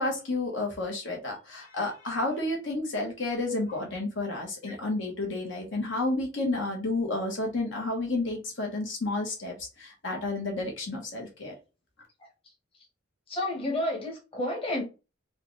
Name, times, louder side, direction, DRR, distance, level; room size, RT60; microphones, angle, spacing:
voice 1, 0.0-11.5, left 2 dB, 70° left, 1.3 m, -31 dB
voice 2, 13.3-14.8, left 1 dB, 30° left, 1.4 m, -30 dB
4.7 x 2.4 x 3.2 m
head